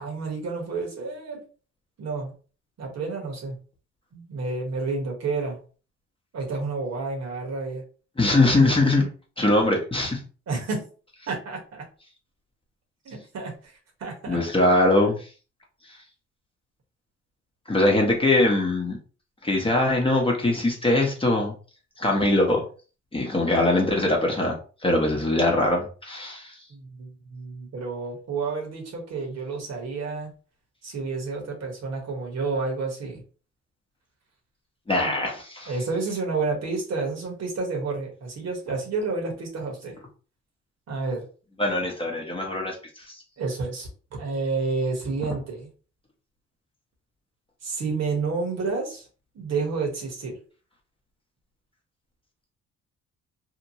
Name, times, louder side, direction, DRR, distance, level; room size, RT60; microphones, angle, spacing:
voice 1, 0.0-1.4 2.0-2.3 2.8-3.6 4.1-5.6 6.3-7.8 10.5-10.9 11.3-11.9 13.0-13.7 14.0-14.4 26.7-30.3 30.8-33.2 34.9-35.3 35.7-40.0 40.9-41.2 43.4-45.7 47.6-49.1 49.3-50.4, right 4 dB, 60° right, 0 dB, 1.2 m, -30 dB
voice 2, 8.2-9.1 9.4-10.2 14.3-15.3 17.7-19.0 19.4-21.5 22.0-22.6 23.1-24.6 24.8-26.5 34.9-35.7 41.6-43.1, left 2 dB, 20° left, -1 dB, 0.8 m, -22 dB
2.9 x 2.1 x 2.8 m, 0.37 s
cardioid pair, 90°, 30 cm